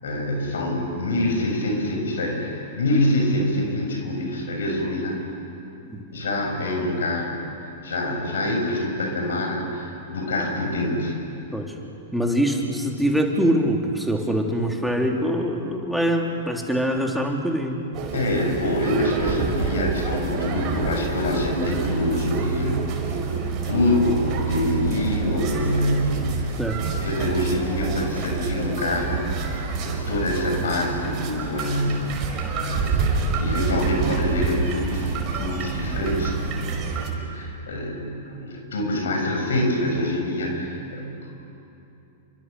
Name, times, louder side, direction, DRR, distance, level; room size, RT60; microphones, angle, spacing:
voice 1, 0.0-5.2 6.1-7.5 7.8-11.2 18.1-22.9 23.6-32.3 32.6-41.3, left 1 dB, 65° left, 2 dB, 7.2 m, -25 dB
voice 2, 12.1-17.8 26.6-26.8, equal, ahead, 1 dB, 3.3 m, -23 dB
sound 1, 17.9-37.1, right 5 dB, 35° right, 5.5 m, -27 dB
30.0 x 24.5 x 6.9 m, 2.8 s
figure-of-eight pair, 100°, 0 cm